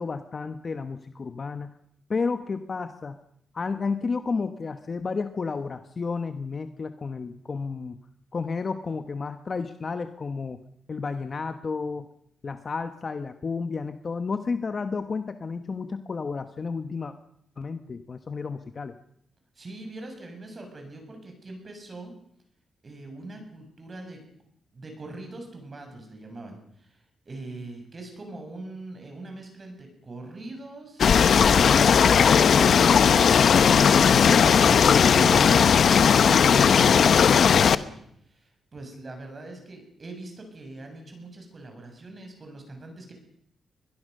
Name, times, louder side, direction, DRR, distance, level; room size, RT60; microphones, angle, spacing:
voice 1, 0.0-1.8 2.1-3.2 3.5-8.0 8.3-10.6 10.9-12.1 12.4-17.1 17.6-18.9, left 4 dB, 40° left, 9 dB, 1.2 m, -31 dB
voice 2, 19.6-22.1 22.8-24.2 24.7-35.7 36.2-43.1, right 2 dB, 35° right, 4 dB, 7.1 m, -41 dB
sound 1, 31.0-37.7, left 7 dB, 60° left, 0.9 m, -17 dB
23.5 x 21.5 x 6.7 m, 0.71 s
wide cardioid pair, 125°, 0 cm